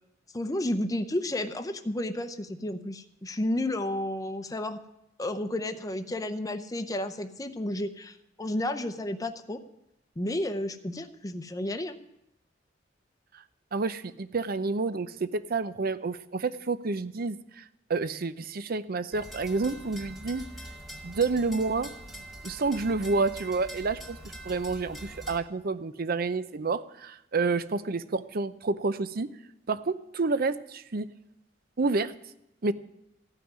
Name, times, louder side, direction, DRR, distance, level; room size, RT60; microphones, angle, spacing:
voice 1, 0.3-4.8 5.2-9.6 10.2-12.0, left 1 dB, 20° left, 8 dB, 0.7 m, -32 dB
voice 2, 13.7-17.6 17.9-20.4 21.0-21.9 22.4-24.2 24.4-29.3 29.7-31.1 31.8-32.1 32.6-32.7, right 3 dB, 55° right, 13 dB, 0.6 m, -29 dB
sound 1, 19.1-25.4, right 1 dB, ahead, 1.9 m, -43 dB
15.0 x 5.9 x 9.5 m, 0.84 s
head